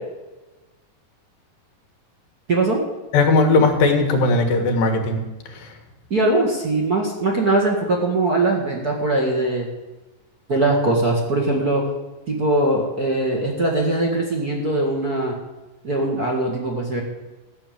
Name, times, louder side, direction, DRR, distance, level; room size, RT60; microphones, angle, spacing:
voice 1, 2.5-2.8 6.1-9.7 10.5-11.8 12.3-15.3 15.8-17.0, right 2 dB, 35° right, -1 dB, 1.8 m, -21 dB
voice 2, 3.1-5.2 5.6-5.7, left 3 dB, 85° left, 3 dB, 3.5 m, -18 dB
14.0 x 7.0 x 9.2 m, 1.1 s
omnidirectional pair, 3.9 m